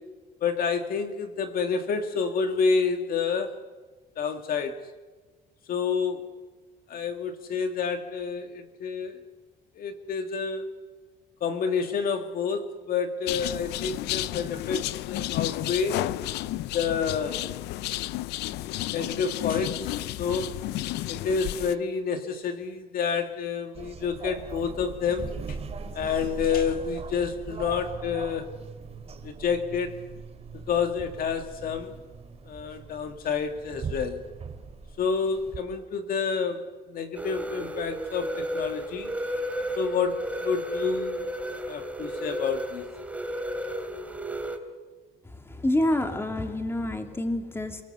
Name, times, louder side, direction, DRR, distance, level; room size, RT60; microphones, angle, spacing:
voice 1, 0.4-3.7 4.2-4.8 5.7-6.3 6.9-9.2 9.7-10.7 11.4-16.0 16.7-17.4 18.9-19.9 20.2-20.6 21.1-25.6 25.9-28.5 29.2-30.0 30.5-32.0 32.5-34.2 35.0-39.1 39.8-41.3 41.7-42.9, left 5 dB, 60° left, 7 dB, 2.1 m, -29 dB
sound 1, 13.3-21.8, left 16 dB, 85° left, 0.7 m, -32 dB
sound 2, 23.7-35.6, right 5 dB, 35° right, 3.0 m, -40 dB
sound 3, 37.1-44.6, equal, 10° right, 2.9 m, -33 dB
voice 2, 45.2-47.8, left 1 dB, 15° left, 5 dB, 2.9 m, -28 dB
29.0 x 19.0 x 8.1 m, 1.3 s
cardioid pair, 110°, 17 cm